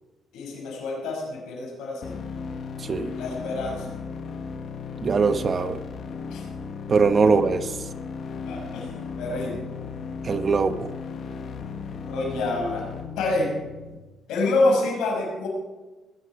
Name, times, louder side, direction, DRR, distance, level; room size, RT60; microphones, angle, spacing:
voice 1, 0.3-2.2 3.2-3.9 6.3-6.4 8.5-8.9 9.2-9.6 12.1-12.9 13.2-13.5 14.3-15.5, left 2 dB, 85° left, -1 dB, 6.0 m, -27 dB
sound 1, 2.0-14.0, left 5 dB, 60° left, 1.3 m, -36 dB
voice 2, 5.0-5.8 6.9-7.6 10.2-10.9, right 4 dB, 40° right, 11 dB, 1.0 m, -21 dB
19.5 x 11.0 x 4.9 m, 1.2 s
cardioid pair, 85°, 0 cm